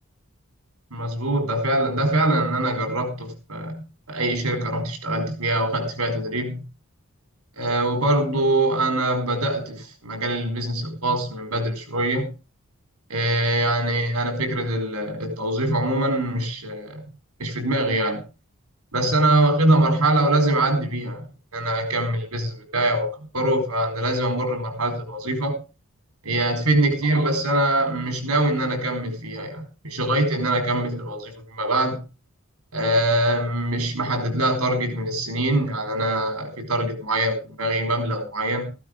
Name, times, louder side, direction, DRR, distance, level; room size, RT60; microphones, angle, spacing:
voice 1, 0.9-6.6 7.6-12.3 13.1-17.0 17.4-18.2 18.9-21.3 21.5-23.1 23.3-25.6 26.2-32.1 32.7-38.7, right 1 dB, 85° right, 4.4 m, -23 dB
15.0 x 12.5 x 3.7 m
head